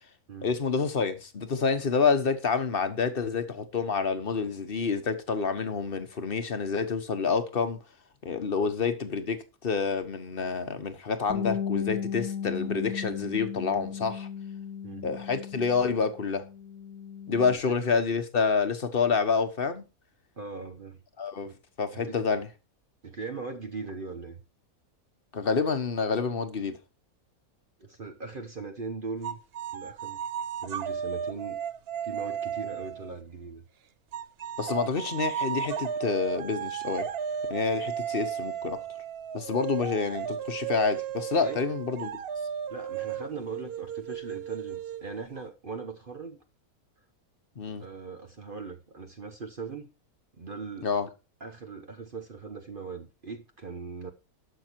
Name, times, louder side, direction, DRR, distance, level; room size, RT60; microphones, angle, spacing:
voice 1, 0.4-7.8 8.2-14.3 15.0-16.5 17.3-19.8 21.2-21.5 21.8-22.5 25.3-26.8 34.6-37.1 37.5-38.8 39.3-42.1 47.6-47.8 50.8-51.1, left 5 dB, 40° left, 1.3 m, -28 dB
Bass guitar, 11.3-16.0 16.3-17.5, left 8 dB, 75° left, 1.2 m, -35 dB
voice 2, 20.4-21.0 21.4-21.6 21.9-22.2 23.0-24.4 27.8-29.4 29.7-30.2 30.6-31.6 32.0-33.6 41.4-41.7 42.7-46.4 47.8-49.9 50.4-50.9 51.4-54.1, right 4 dB, 40° right, 1.0 m, -39 dB
sound 1, 29.2-33.1 34.1-45.4, right 8 dB, 55° right, 0.7 m, -34 dB
12.0 x 6.8 x 4.6 m
omnidirectional pair, 1.6 m